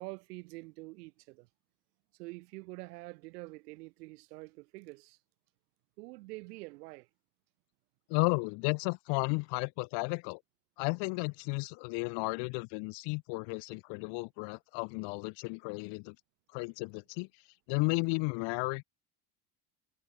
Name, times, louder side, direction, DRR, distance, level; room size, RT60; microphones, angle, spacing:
voice 1, 0.0-1.5 2.2-5.2 6.0-7.1, right 23 dB, 85° right, 2.2 m, -46 dB
voice 2, 8.1-10.4 10.8-16.2 16.5-17.3 17.7-18.8, left 33 dB, 65° left, 0.9 m, -33 dB
supercardioid pair, 125°, 46 cm